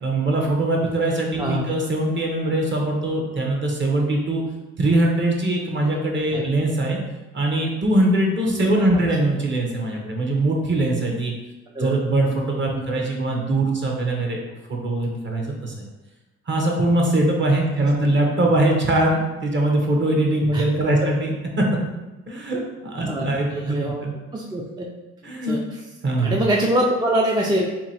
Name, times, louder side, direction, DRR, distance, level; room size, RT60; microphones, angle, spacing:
voice 1, 0.0-4.4 4.8-7.0 7.3-11.3 11.8-14.4 14.7-15.8 16.5-21.6 22.3-24.1 25.2-25.6 26.0-26.4, right 1 dB, 40° right, 0 dB, 0.9 m, -22 dB
voice 2, 23.5-24.0 24.3-24.9 25.4-25.6 26.2-27.7, right 1 dB, 15° right, -1 dB, 0.4 m, -23 dB
2.9 x 2.7 x 4.2 m, 1.1 s
cardioid pair, 90°, 30 cm